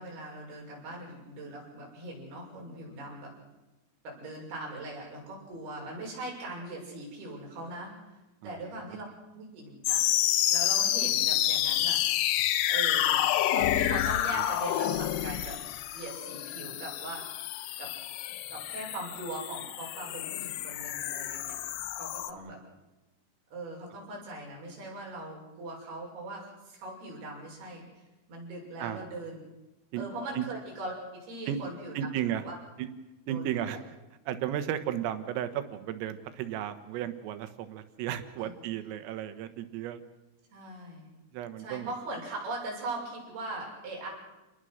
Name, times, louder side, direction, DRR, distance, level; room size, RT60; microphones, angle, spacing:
voice 1, 0.0-3.3 4.0-7.9 8.4-9.1 9.3-10.0 10.5-12.0 12.7-15.6 15.9-17.3 17.8-17.9 18.5-21.6 22.0-22.6 23.5-27.9 28.3-29.4 29.9-32.0 32.4-32.5 33.3-33.8 38.4-38.5 40.5-41.1 41.6-44.1, right 2 dB, 50° right, -2 dB, 8.5 m, -40 dB
voice 2, 8.4-8.8 14.3-14.4 22.4-22.6 28.8-29.0 29.9-30.0 30.4-30.5 31.5-31.6 32.0-32.4 32.8-32.9 33.3-34.0 34.3-40.0 41.3-41.9, right 10 dB, 85° right, 10 dB, 4.0 m, -34 dB
sound 1, 9.8-22.3, left 12 dB, 80° left, 2.3 m, -29 dB
28.5 x 20.0 x 6.6 m, 1.0 s
omnidirectional pair, 5.8 m